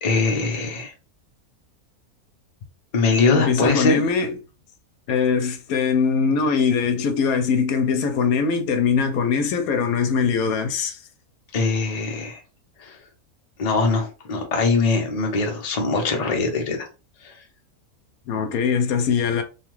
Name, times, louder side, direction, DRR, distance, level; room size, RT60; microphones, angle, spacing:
voice 1, 0.0-0.9 2.9-4.0 11.5-12.4 12.8-13.0 13.6-16.9 17.2-17.4, left 3 dB, 40° left, 0.6 m, -22 dB
voice 2, 3.3-4.4 5.1-11.0 18.3-19.4, left 6 dB, 80° left, 1.0 m, -21 dB
2.8 x 2.4 x 3.0 m
omnidirectional pair, 1.5 m